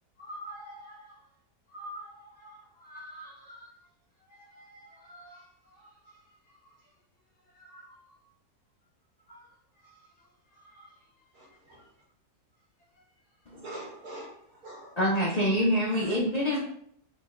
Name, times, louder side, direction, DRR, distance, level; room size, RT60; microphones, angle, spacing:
voice 1, 0.1-1.3 1.7-3.9 4.2-7.0 7.3-8.2 9.2-11.6 12.8-13.5, equal, 45° left, -10 dB, 1.4 m, -49 dB
voice 2, 11.3-11.9 13.5-14.9 15.9-16.1 16.5-16.6, right 1 dB, 70° right, -4 dB, 2.1 m, -44 dB
voice 3, 15.0-16.6, equal, 65° left, -5 dB, 0.4 m, -26 dB
5.0 x 2.1 x 3.7 m, 0.65 s
omnidirectional pair, 1.6 m